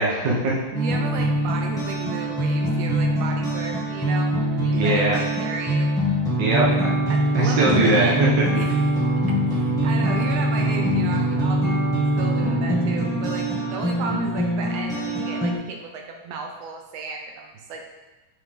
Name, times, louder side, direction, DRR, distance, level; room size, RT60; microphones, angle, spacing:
voice 1, 0.0-0.5 4.7-5.1 6.4-6.9 7.3-8.3, right 2 dB, 60° right, -5 dB, 1.2 m, -21 dB
sound 1, 0.7-15.5, right 1 dB, ahead, 0.7 m, -23 dB
voice 2, 0.7-5.9 7.1-8.8 9.3-11.9 12.2-17.9, right 4 dB, 90° right, 2 dB, 1.4 m, -34 dB
6.7 x 5.8 x 3.7 m, 1.1 s
omnidirectional pair, 3.6 m